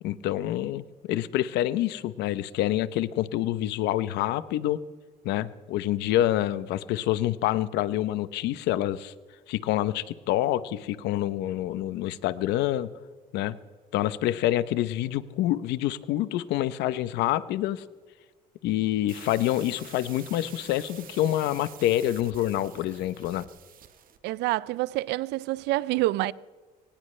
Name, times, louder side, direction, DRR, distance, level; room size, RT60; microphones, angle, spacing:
voice 1, 0.0-4.8 5.2-9.1 9.5-12.9 13.3-13.6 13.9-17.8 18.6-23.5, left 13 dB, 85° left, 0.8 m, -27 dB
sound 1, 19.1-24.2, right 9 dB, 55° right, 1.6 m, -48 dB
voice 2, 24.2-26.3, right 18 dB, 85° right, 0.5 m, -27 dB
23.5 x 18.5 x 3.3 m
cardioid pair, 110°, 17 cm